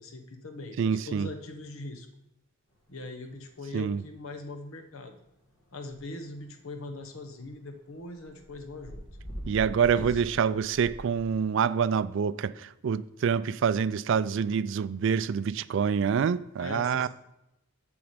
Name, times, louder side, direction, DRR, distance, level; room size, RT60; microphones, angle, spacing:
voice 1, 0.0-2.1 2.9-5.1 5.7-9.0 9.9-10.2 16.6-17.1, left 2 dB, 85° left, 1.1 m, -41 dB
voice 2, 0.8-1.3 3.7-4.0 9.5-17.1, right 7 dB, 60° right, 0.3 m, -26 dB
sound 1, 3.4-6.4 6.7-7.5 8.0-11.4, equal, 65° left, 2.0 m, -43 dB
7.2 x 7.1 x 5.1 m
head